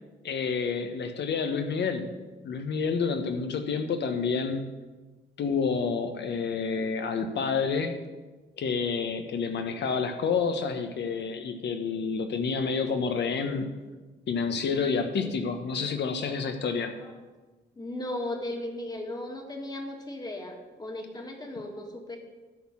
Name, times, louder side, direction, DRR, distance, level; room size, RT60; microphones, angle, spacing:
voice 1, 0.2-2.1 2.4-4.6 5.4-7.9 8.6-13.7 14.3-16.9, left 5 dB, 60° left, 7 dB, 1.2 m, -29 dB
voice 2, 17.8-22.2, left 1 dB, 20° left, 3 dB, 1.9 m, -36 dB
12.5 x 4.5 x 7.4 m, 1.2 s
cardioid pair, 90°, 20 cm